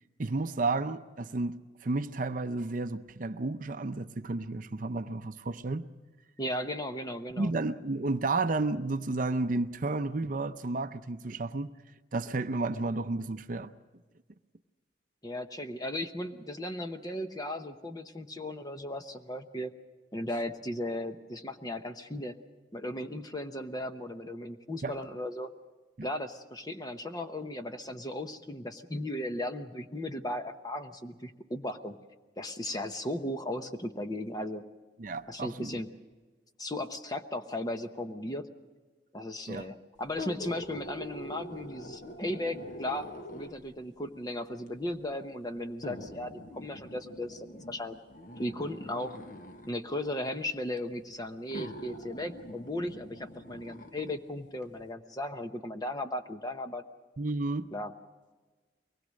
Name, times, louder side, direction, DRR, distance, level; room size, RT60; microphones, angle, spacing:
voice 1, 0.2-5.9 7.4-11.7 12.1-13.7 24.8-25.0 26.0-26.1 35.0-35.8 39.5-39.7 57.2-57.7, right 3 dB, 45° right, 0.6 m, -32 dB
voice 2, 6.4-7.5 15.2-19.7 20.1-22.3 22.7-25.5 26.0-32.0 32.4-34.6 35.3-35.9 36.6-38.5 39.1-48.0 48.4-49.2 49.7-56.8 57.7-57.9, left 1 dB, 20° left, 0.9 m, -36 dB
sound 1, 40.1-43.7 44.7-44.8 45.8-49.7 50.8-50.9 51.5-54.2 54.6-54.7, left 1 dB, 45° left, 1.2 m, -44 dB
23.5 x 20.0 x 6.4 m
head